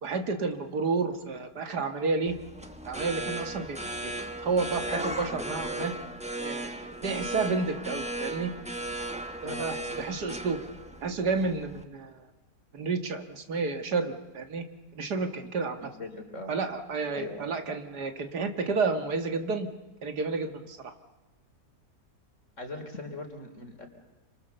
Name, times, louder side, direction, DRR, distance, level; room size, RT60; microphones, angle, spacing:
voice 1, 0.0-2.4 2.9-3.8 4.0-4.1 4.4-5.9 6.4-8.5 9.4-10.6 11.0-12.3 12.7-14.6 15.0-15.8 16.5-19.7 20.0-20.8, right 4 dB, 85° right, 7 dB, 2.3 m, -30 dB
sound 1, 2.2-11.8, right 1 dB, 5° right, 1.2 m, -36 dB
voice 2, 9.4-10.2 15.8-16.5 17.1-17.5 22.6-23.9, left 2 dB, 50° left, 5 dB, 3.6 m, -41 dB
27.5 x 25.0 x 6.9 m, 1.1 s
omnidirectional pair, 1.7 m